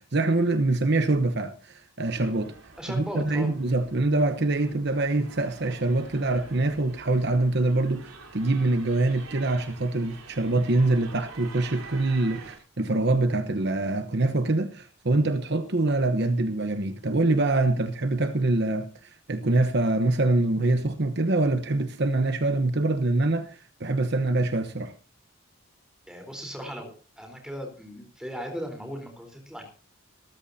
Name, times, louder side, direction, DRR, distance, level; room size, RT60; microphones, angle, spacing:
voice 1, 0.0-2.5 2.9-24.9, right 2 dB, 50° right, 1.0 m, -25 dB
sound 1, 2.0-12.6, right 4 dB, 70° right, 3.8 m, -47 dB
voice 2, 2.8-3.5 26.1-29.7, equal, 5° right, 4.1 m, -37 dB
20.0 x 14.0 x 2.8 m
head